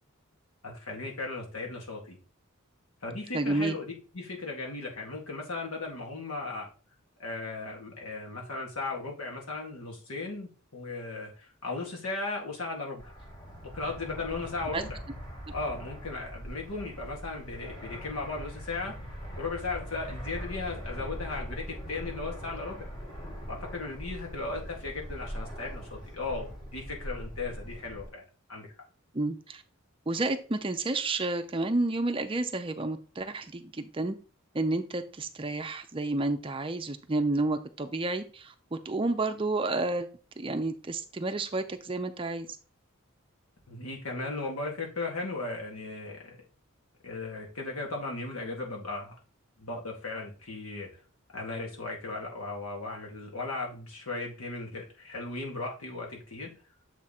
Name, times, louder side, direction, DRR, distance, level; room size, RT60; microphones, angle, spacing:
voice 1, 0.6-2.2 3.0-6.7 7.2-13.1 13.6-15.0 15.5-19.0 19.4-22.9 23.5-28.2 28.5-28.7 43.7-46.4 47.0-49.1 49.6-50.9 51.3-56.5, left 3 dB, 85° left, 0 dB, 1.9 m, -36 dB
voice 2, 3.3-3.8 14.7-14.8 29.1-29.6 30.1-34.2 34.5-40.1 40.4-42.5, right 2 dB, 25° right, 9 dB, 0.5 m, -30 dB
Fixed-wing aircraft airplane, 13.0-28.1, equal, 20° left, 2.0 m, -41 dB
7.2 x 3.7 x 4.2 m, 0.36 s
head